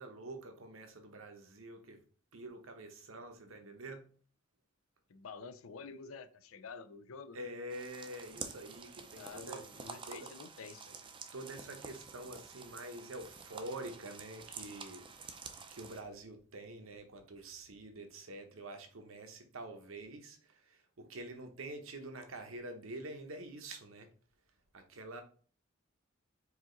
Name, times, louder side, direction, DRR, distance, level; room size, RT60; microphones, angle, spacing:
voice 1, 0.0-2.0 2.3-4.0 7.3-9.7 10.0-10.3 11.3-15.1 15.7-24.1 24.7-25.2, right 1 dB, 80° right, 0.9 m, -47 dB
voice 2, 5.1-7.4 9.1-11.0, left 5 dB, 85° left, 0.5 m, -49 dB
sound 1, 7.7-16.0, right 5 dB, 25° right, 0.5 m, -49 dB
4.8 x 2.9 x 3.9 m
head